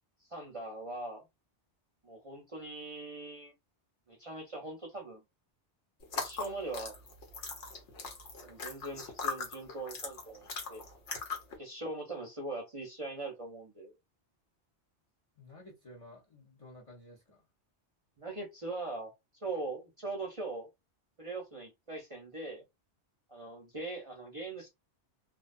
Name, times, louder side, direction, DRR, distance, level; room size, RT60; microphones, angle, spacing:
voice 1, 0.3-1.2 2.0-3.5 4.1-5.2 6.1-7.0 8.4-10.8 11.6-14.0 18.2-19.1 19.4-20.7 21.2-22.6 23.3-24.7, right 2 dB, 40° right, 0.5 m, -41 dB
sound 1, 6.0-11.6, left 4 dB, 85° left, 1.1 m, -40 dB
voice 2, 15.4-17.4, left 1 dB, 35° left, 0.6 m, -53 dB
2.6 x 2.2 x 2.4 m
omnidirectional pair, 1.2 m